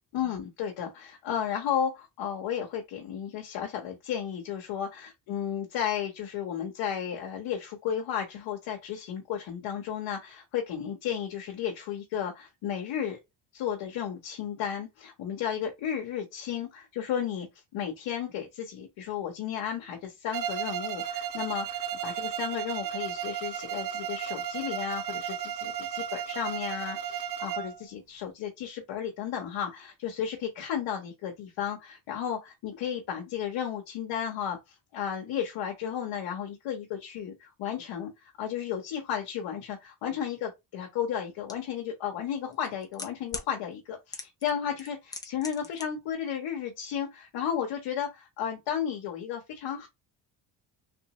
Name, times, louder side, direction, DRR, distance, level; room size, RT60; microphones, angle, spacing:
voice 1, 0.1-13.2 13.5-17.5 17.7-49.9, left 9 dB, 75° left, 1.0 m, -33 dB
Bowed string instrument, 20.3-27.8, right 9 dB, 50° right, 0.7 m, -34 dB
sound 1, 41.5-41.6 42.5-43.5 44.1-44.5 44.8-45.8 46.1-46.2, left 2 dB, 10° left, 0.6 m, -38 dB
3.4 x 2.6 x 2.9 m
cardioid pair, 110°, 44 cm